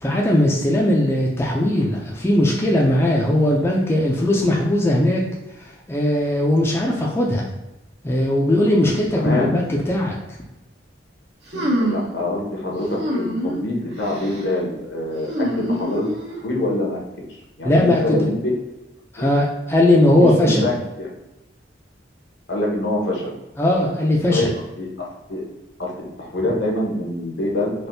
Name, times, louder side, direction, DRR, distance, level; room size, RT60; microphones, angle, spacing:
voice 1, 0.0-5.2 5.6-7.5 8.0-10.4 17.6-18.3 19.1-20.6 23.6-24.4, left 1 dB, 15° left, -2 dB, 0.4 m, -19 dB
voice 2, 9.1-9.6 11.5-16.0 16.4-17.0 17.6-18.4 19.2-19.3 20.2-21.1 22.5-23.3 24.3-24.5 24.8-25.4 25.8-25.9 26.2-27.7, left 1 dB, 80° left, -2 dB, 0.9 m, -25 dB
sound 1, 11.5-12.1 13.0-13.6 14.0-14.4 15.2-16.4, equal, 60° right, 0.7 m, -25 dB
3.4 x 2.5 x 2.6 m, 1.0 s
head